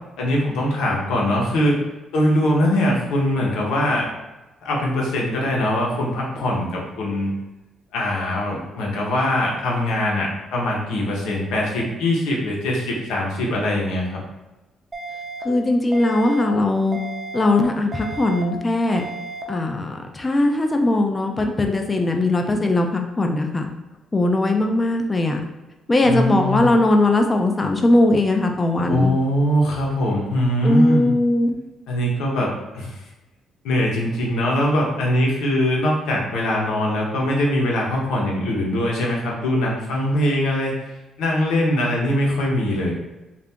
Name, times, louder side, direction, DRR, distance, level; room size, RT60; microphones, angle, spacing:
voice 1, 0.2-1.8 2.1-4.1 4.6-7.3 7.9-14.2 26.0-26.7 28.8-31.1 31.9-32.9 33.6-40.7 41.2-42.9, left 1 dB, 90° left, -2 dB, 0.9 m, -22 dB
sound 1, 14.9-15.4 15.9-16.4 16.9-17.4 17.9-18.4 18.9-19.4, right 3 dB, 20° right, 0.6 m, -33 dB
voice 2, 15.4-17.0 17.3-19.0 19.5-23.7 24.1-25.4 25.9-29.1 30.6-31.6, left 2 dB, 25° left, 3 dB, 0.5 m, -19 dB
2.8 x 2.5 x 3.5 m, 1.1 s
cardioid pair, 90°, 0 cm